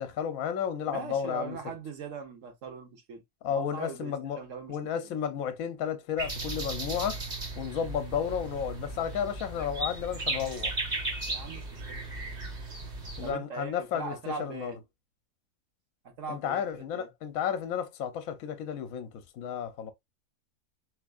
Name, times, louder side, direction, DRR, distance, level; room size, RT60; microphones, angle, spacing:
voice 1, 0.0-1.6 3.4-4.4 4.7-7.2 7.6-10.7 13.2-14.7 16.3-19.9, left 8 dB, 65° left, 1.1 m, -32 dB
voice 2, 0.9-3.2 3.5-4.8 5.0-5.1 11.2-12.0 13.2-14.8 16.0-17.1, right 5 dB, 55° right, 1.2 m, -40 dB
sound 1, 6.2-13.3, right 2 dB, 30° right, 0.9 m, -36 dB
3.9 x 3.4 x 2.4 m
omnidirectional pair, 1.7 m